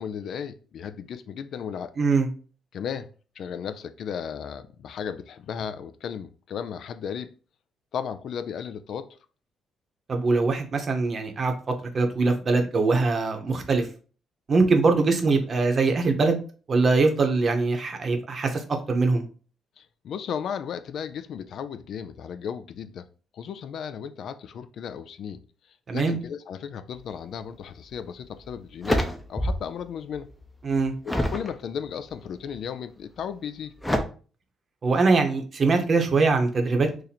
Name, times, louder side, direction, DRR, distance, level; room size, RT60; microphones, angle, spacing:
voice 1, 0.0-1.9 2.7-3.1 3.4-7.4 7.9-9.2 19.8-23.1 23.3-25.4 25.9-29.0 29.3-30.3 31.0-33.7, left 7 dB, 65° left, 0.3 m, -35 dB
voice 2, 2.0-2.3 10.1-11.5 11.8-13.9 14.5-16.4 16.7-19.3 25.9-26.2 30.6-30.9 34.8-36.9, right 3 dB, 45° right, 0.8 m, -22 dB
sound 1, 27.9-28.0 28.5-29.8 30.1-31.5 32.1-32.5 33.8-34.0, equal, 5° left, 0.6 m, -27 dB
2.8 x 2.6 x 4.1 m
cardioid pair, 90°, 0 cm